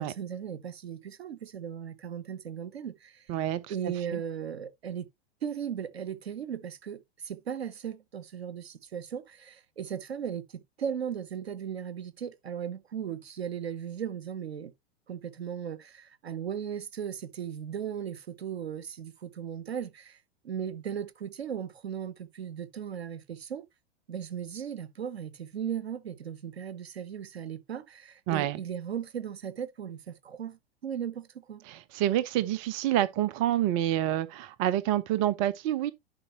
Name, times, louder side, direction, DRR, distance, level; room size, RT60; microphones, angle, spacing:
voice 1, 0.0-3.2 3.7-5.1 5.4-14.7 15.1-20.2 20.4-23.6 24.1-31.6, right 8 dB, 70° right, 1.0 m, -37 dB
voice 2, 3.3-3.7 4.1-4.2 28.3-28.6 31.7-35.9, right 13 dB, 30° right, 0.6 m, -28 dB
11.0 x 5.2 x 2.9 m
figure-of-eight pair, 100°, 32 cm